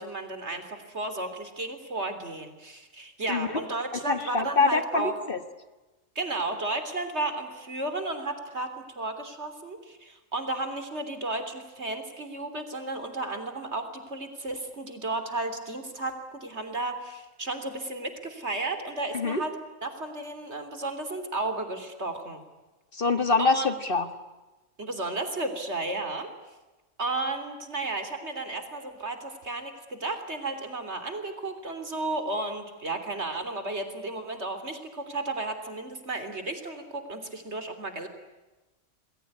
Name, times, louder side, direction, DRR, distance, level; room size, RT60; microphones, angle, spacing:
voice 1, 0.0-5.1 6.2-8.7 9.0-19.5 19.8-22.4 23.4-23.7 24.8-26.3 27.0-38.1, right 2 dB, 60° right, 8 dB, 3.7 m, -33 dB
voice 2, 3.3-3.6 4.1-5.4 19.1-19.4 22.9-24.1, left 4 dB, 45° left, 10 dB, 1.8 m, -25 dB
28.0 x 21.0 x 9.7 m, 1.1 s
omnidirectional pair, 1.3 m